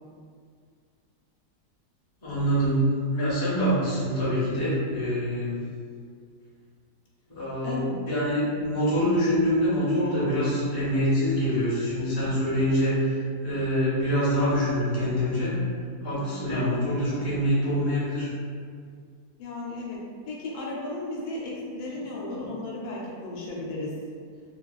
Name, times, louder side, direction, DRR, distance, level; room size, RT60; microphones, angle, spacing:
voice 1, 2.2-2.8 3.1-5.6 7.3-15.5 16.0-18.3 22.3-22.5, equal, 40° left, -9 dB, 0.3 m, -25 dB
voice 2, 19.4-20.0 20.3-24.0, left 2 dB, 75° left, -4 dB, 1.1 m, -34 dB
2.6 x 2.3 x 2.2 m, 2.1 s
omnidirectional pair, 1.7 m